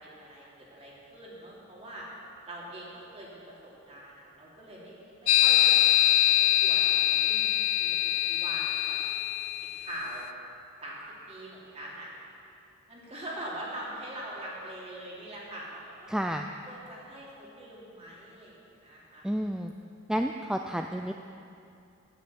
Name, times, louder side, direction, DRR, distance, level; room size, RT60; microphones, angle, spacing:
voice 1, 0.0-2.1 2.4-6.3 6.6-9.0 9.8-10.2 10.8-11.0 11.3-12.1 12.9-16.1 16.7-19.2, right 1 dB, 30° right, -5 dB, 2.9 m, -43 dB
sound 1, 5.3-10.0, left 13 dB, 85° left, 0.5 m, -24 dB
voice 2, 16.1-16.5 19.2-19.7 20.1-21.1, equal, 5° right, 4 dB, 0.3 m, -30 dB
9.6 x 9.6 x 8.0 m, 2.6 s
head